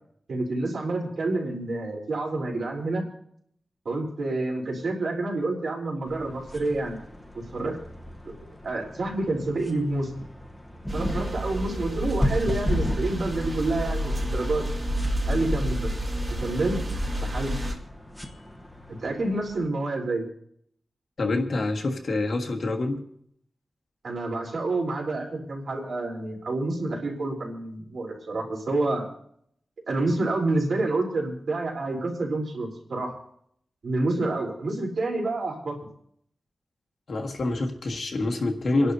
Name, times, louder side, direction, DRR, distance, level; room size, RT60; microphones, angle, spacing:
voice 1, 0.3-3.1 3.9-7.0 7.3-7.8 8.6-10.2 10.9-14.7 15.3-15.9 16.4-16.8 17.2-17.5 18.9-20.3 24.0-29.1 29.9-33.2 33.8-35.8, right 2 dB, 75° right, -1 dB, 3.6 m, -28 dB
sound 1, 6.0-19.7, left 1 dB, 5° left, 0.9 m, -35 dB
sound 2, 10.9-17.7, equal, 30° right, 2.3 m, -29 dB
voice 2, 21.2-23.0 37.1-38.9, left 2 dB, 60° left, 1 dB, 1.6 m, -26 dB
29.0 x 11.0 x 2.7 m, 0.68 s
wide cardioid pair, 145°, 0 cm